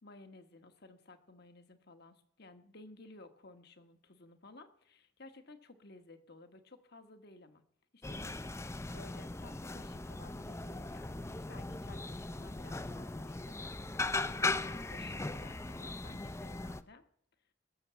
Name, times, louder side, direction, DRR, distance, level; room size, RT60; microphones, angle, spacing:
voice 1, 0.0-7.6 7.9-13.6 14.0-17.0, left 2 dB, 60° left, 7 dB, 1.6 m, -56 dB
sound 1, 8.0-16.8, left 3 dB, 15° left, 0.5 m, -39 dB
19.5 x 7.5 x 7.0 m, 0.63 s
head